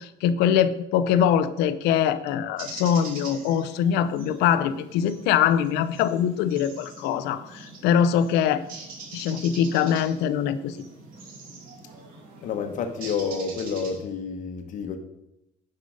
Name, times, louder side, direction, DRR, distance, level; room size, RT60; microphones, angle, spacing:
voice 1, 0.0-8.6 9.1-10.8, left 9 dB, 85° left, 13 dB, 0.7 m, -23 dB
sound 1, 2.6-14.0, right 3 dB, 60° right, 2.8 m, -43 dB
voice 2, 12.4-15.0, left 6 dB, 50° left, 5 dB, 1.2 m, -29 dB
10.0 x 5.6 x 5.1 m, 0.89 s
cardioid pair, 150°, 17 cm